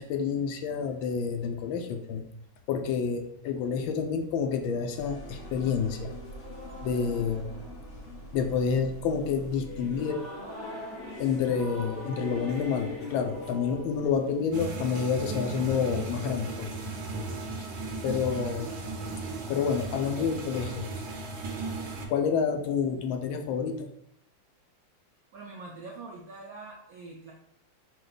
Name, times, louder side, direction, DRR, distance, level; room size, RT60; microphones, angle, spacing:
voice 1, 0.0-2.2 2.7-6.1 6.8-7.5 8.3-10.2 11.2-16.7 18.0-18.7 19.5-20.9 22.1-23.9, left 6 dB, 85° left, 5 dB, 1.4 m, -29 dB
sound 1, 2.3-10.2, right 2 dB, 70° left, 1.6 m, -47 dB
sound 2, 5.2-14.5, left 2 dB, 35° left, 1.1 m, -42 dB
sound 3, 14.5-22.1, right 3 dB, 60° right, 1.1 m, -36 dB
voice 2, 25.3-27.3, right 3 dB, 80° right, -1 dB, 0.8 m, -44 dB
4.9 x 2.2 x 3.9 m, 0.75 s
omnidirectional pair, 2.1 m